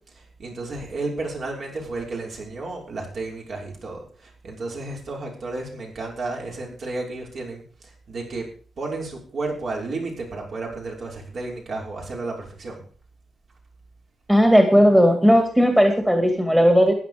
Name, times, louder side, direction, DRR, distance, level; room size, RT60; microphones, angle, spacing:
voice 1, 0.1-8.4 8.8-12.8, right 3 dB, 55° right, -1 dB, 5.9 m, -32 dB
voice 2, 14.3-16.9, equal, 5° right, 5 dB, 2.3 m, -16 dB
14.5 x 10.5 x 5.2 m, 0.42 s
wide cardioid pair, 135°, 0 cm